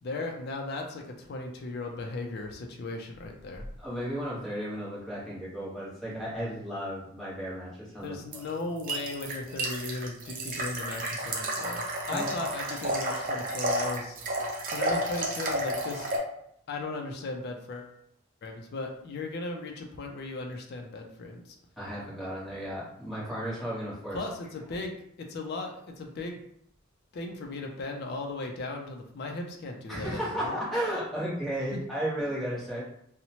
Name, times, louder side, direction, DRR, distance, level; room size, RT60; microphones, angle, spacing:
voice 1, 0.0-3.7 8.0-14.2 14.7-16.1 16.7-17.9 18.4-21.6 24.1-26.4 27.1-30.6 31.7-31.8, left 2 dB, 50° left, 2 dB, 0.4 m, -37 dB
voice 2, 3.8-8.2 12.1-12.3 21.8-24.2 29.9-32.8, equal, ahead, -8 dB, 0.9 m, -34 dB
sound 1, 8.3-16.2, right 1 dB, 40° right, 0.5 m, -31 dB
2.9 x 2.0 x 2.7 m, 0.71 s
head